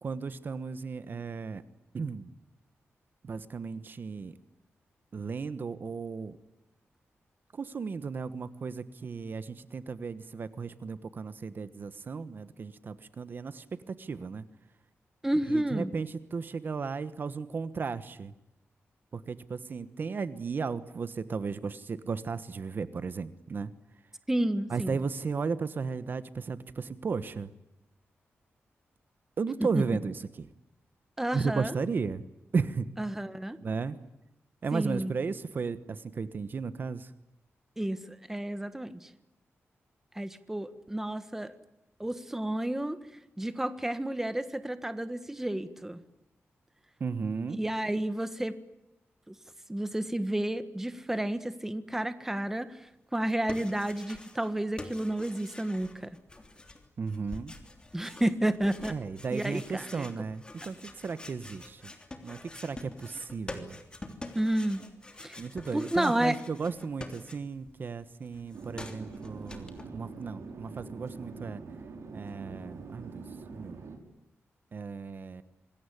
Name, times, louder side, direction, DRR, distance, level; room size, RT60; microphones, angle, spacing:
voice 1, 0.0-1.6 1.9-2.3 3.2-4.3 5.1-6.4 7.5-14.4 15.5-18.3 19.1-23.7 24.7-27.5 29.4-30.5 31.3-32.2 32.5-32.9 33.6-34.0 34.6-37.1 47.0-47.6 57.0-57.5 58.9-61.8 62.2-63.8 65.4-71.6 72.1-73.2 73.5-73.8 74.7-75.4, right 5 dB, 45° right, 14 dB, 1.2 m, -35 dB
voice 2, 15.2-15.9 24.3-25.0 29.6-29.8 31.2-31.7 33.0-33.6 34.7-35.1 37.8-39.1 40.1-41.5 42.0-43.0 43.4-46.0 47.5-48.6 49.3-49.4 49.7-52.8 53.1-56.2 57.9-58.9 59.3-60.1 64.3-64.8 65.2-65.4 65.7-66.4, right 1 dB, 10° right, 12 dB, 1.4 m, -31 dB
sound 1, 53.1-54.5 54.8-67.7 68.0-69.8, left 2 dB, 20° left, 3.2 m, -46 dB
Chatter / Fixed-wing aircraft airplane, 68.5-74.0, right 4 dB, 70° right, 5.0 m, -44 dB
26.5 x 21.5 x 9.9 m, 0.87 s
wide cardioid pair, 165°, 5 cm